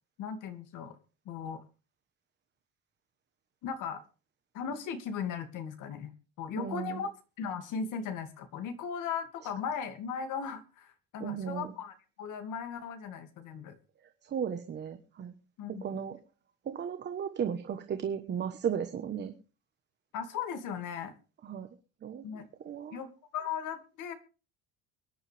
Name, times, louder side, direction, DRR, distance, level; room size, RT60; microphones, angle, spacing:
voice 1, 0.2-1.0 1.3-1.6 3.6-4.0 4.5-7.1 7.4-13.8 15.6-15.8 20.1-21.1 22.2-22.5 22.9-24.1, left 6 dB, 60° left, 8 dB, 2.6 m, -37 dB
voice 2, 6.6-7.0 11.2-11.7 14.2-15.3 15.8-16.2 16.6-19.3 21.4-21.7 22.0-23.0, right 8 dB, 30° right, 7 dB, 1.2 m, -35 dB
23.5 x 10.5 x 3.5 m, 0.35 s
cardioid pair, 170°, 34 cm